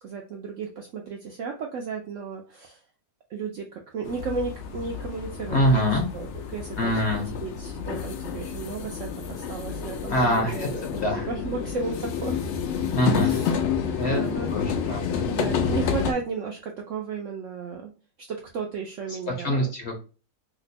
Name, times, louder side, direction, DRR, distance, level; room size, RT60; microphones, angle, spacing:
voice 1, 0.0-2.8 3.3-12.4 13.2-14.5 15.3-18.0 18.3-19.7, right 5 dB, 70° right, 1 dB, 0.7 m, -34 dB
sound 1, 4.0-16.1, left 7 dB, 80° left, 0.6 m, -29 dB
voice 2, 5.5-6.0 6.8-7.3 10.1-11.3 12.9-13.3 13.9-14.2 14.5-15.3 19.3-20.0, equal, 55° left, 1 dB, 0.9 m, -24 dB
2.9 x 2.1 x 4.0 m, 0.33 s
omnidirectional pair, 1.7 m